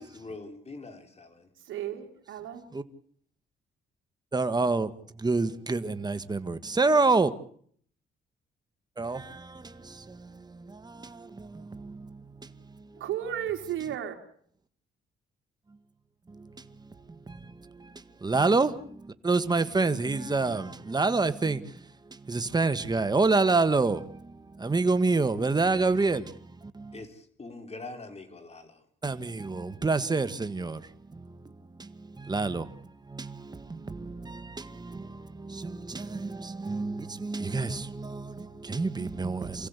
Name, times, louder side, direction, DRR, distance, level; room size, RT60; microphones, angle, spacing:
voice 1, 0.0-1.5 26.9-28.8, left 3 dB, 30° left, 4.3 m, -44 dB
voice 2, 1.7-2.6 13.0-14.2, right 10 dB, 75° right, 3.8 m, -33 dB
voice 3, 4.3-7.3 9.0-13.0 16.3-27.0 29.0-39.7, right 3 dB, 20° right, 1.6 m, -29 dB
28.5 x 16.0 x 8.3 m
cardioid pair, 90°, 20 cm